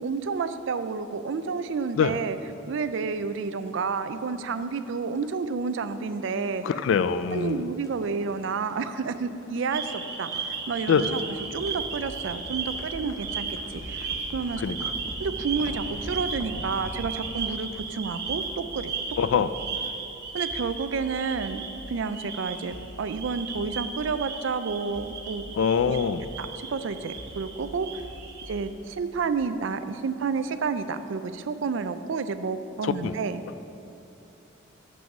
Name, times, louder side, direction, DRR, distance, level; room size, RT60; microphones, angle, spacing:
voice 1, 0.0-2.4 2.7-6.6 7.3-11.2 11.5-14.6 15.2-18.9 19.3-19.4 20.3-25.4 25.9-26.0 26.4-28.0 28.5-33.4, right 5 dB, 70° right, 11 dB, 0.4 m, -30 dB
voice 2, 6.6-7.6 10.9-11.1 14.6-14.9 19.2-19.5 25.6-26.3 32.8-33.1, left 6 dB, 75° left, 13 dB, 0.3 m, -24 dB
sound 1, 6.9-19.0, equal, 15° left, 0.7 m, -43 dB
sound 2, 9.7-28.5, right 5 dB, 50° right, 1.0 m, -36 dB
sound 3, 11.6-29.4, equal, 45° left, 0.9 m, -46 dB
7.0 x 6.1 x 5.9 m, 2.7 s
head